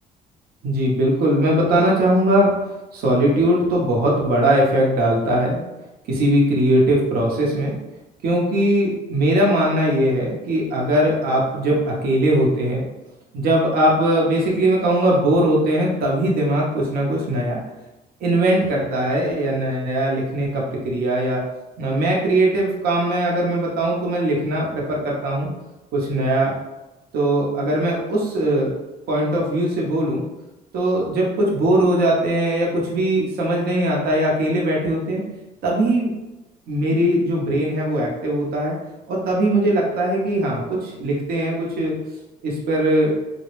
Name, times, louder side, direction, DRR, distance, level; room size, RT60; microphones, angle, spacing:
voice 1, 0.6-2.5 2.9-5.6 6.1-7.8 8.2-12.8 13.3-17.6 18.2-21.4 21.8-25.5 25.9-26.5 27.1-28.7 29.1-30.2 30.7-35.2 35.6-36.1 36.7-38.7 39.1-42.0 42.4-43.1, right 1 dB, 65° right, -2 dB, 0.7 m, -20 dB
2.2 x 2.0 x 3.0 m, 1.0 s
cardioid pair, 110°, 17 cm